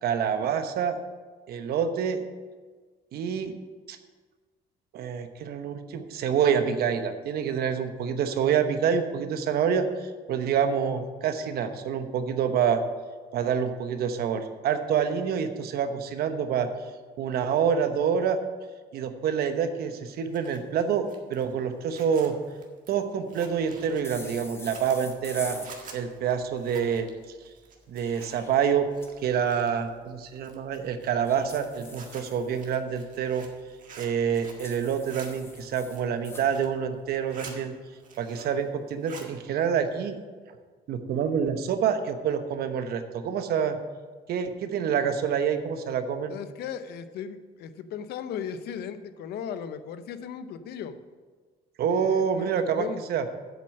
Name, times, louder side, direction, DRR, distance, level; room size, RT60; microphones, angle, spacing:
voice 1, 0.0-1.0 1.5-2.2 3.1-3.5 3.9-4.0 4.9-12.8 13.3-16.7 17.2-18.4 18.9-22.3 22.9-25.6 25.9-27.1 27.9-28.9 29.2-33.5 34.0-37.7 38.2-40.2 40.9-43.8 44.3-46.3 51.8-53.3, right 7 dB, 65° right, 8 dB, 1.0 m, -27 dB
Zipper (clothing), 20.1-28.6 28.9-29.9 30.4-34.7 34.9-35.3 35.8-36.8 37.1-37.6 37.9-38.6 38.9-39.3, right 5 dB, 50° right, 1.8 m, -48 dB
sound 1, 24.0-25.7 27.8-29.1 31.3-32.8 34.6-36.5, left 2 dB, 15° left, 1.5 m, -45 dB
voice 2, 46.3-51.0 51.9-53.0, left 8 dB, 75° left, 11 dB, 0.8 m, -37 dB
8.3 x 7.5 x 6.5 m, 1.4 s
cardioid pair, 110°, 17 cm